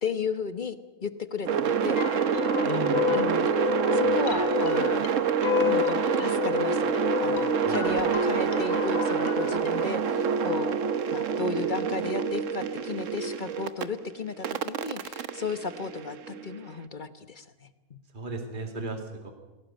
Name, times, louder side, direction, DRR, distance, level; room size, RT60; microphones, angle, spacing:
voice 1, 0.0-2.0 3.1-3.5 3.9-5.0 5.6-10.8 11.1-18.0, left 4 dB, 35° left, 11 dB, 1.1 m, -34 dB
sound 1, 1.5-13.8 14.4-16.6, right 7 dB, 60° right, 1.2 m, -27 dB
sound 2, 2.0-9.9, left 9 dB, 70° left, 1.4 m, -30 dB
voice 2, 2.6-3.0 7.6-7.8 18.1-19.3, right 1 dB, 30° right, 4 dB, 2.5 m, -35 dB
22.5 x 17.5 x 9.2 m, 1.1 s
omnidirectional pair, 1.6 m